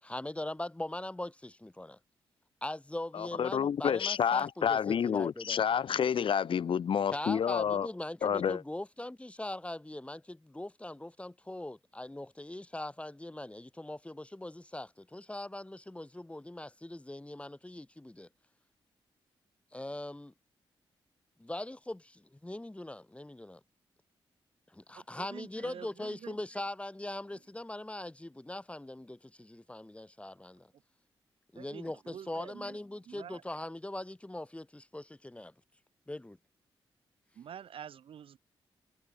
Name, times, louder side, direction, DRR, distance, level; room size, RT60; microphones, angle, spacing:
voice 1, 0.0-2.0 2.6-5.6 7.1-18.3 19.7-20.3 21.4-23.6 24.7-30.7 31.5-35.5 36.1-36.4, left 1 dB, 15° left, 2.7 m, -41 dB
voice 2, 3.1-7.9 8.2-8.6, left 8 dB, 70° left, 2.2 m, -29 dB
voice 3, 25.0-26.3 31.5-32.8 33.1-33.4 37.3-38.4, right 9 dB, 75° right, 3.3 m, -47 dB
cardioid pair, 65°, 9 cm